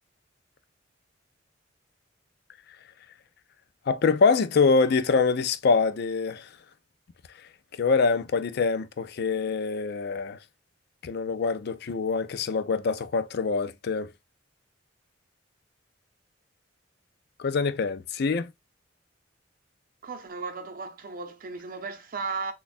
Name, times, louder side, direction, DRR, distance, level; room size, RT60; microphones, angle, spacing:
voice 1, 3.9-6.5 7.7-10.4 11.0-14.1 17.4-18.5, left 4 dB, 55° left, 0.4 m, -25 dB
voice 2, 20.0-22.5, right 4 dB, 50° right, 0.7 m, -35 dB
3.5 x 2.3 x 3.9 m
head